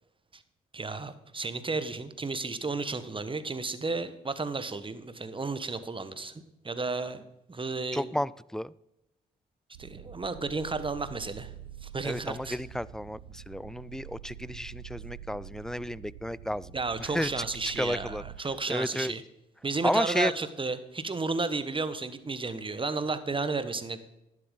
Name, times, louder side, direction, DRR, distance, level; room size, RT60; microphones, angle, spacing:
voice 1, 0.7-7.2 7.5-8.2 9.8-11.5 11.8-12.6 16.7-19.2 19.6-24.0, right 3 dB, 25° right, 12 dB, 1.2 m, -33 dB
voice 2, 7.9-8.7 12.0-16.7 17.0-17.4 17.8-18.2 18.7-19.1 19.8-20.3, equal, 5° left, 21 dB, 0.3 m, -32 dB
sound 1, 9.7-18.4, right 11 dB, 90° right, 0.6 m, -46 dB
11.0 x 11.0 x 3.9 m, 0.89 s
hypercardioid pair, 45°, 20 cm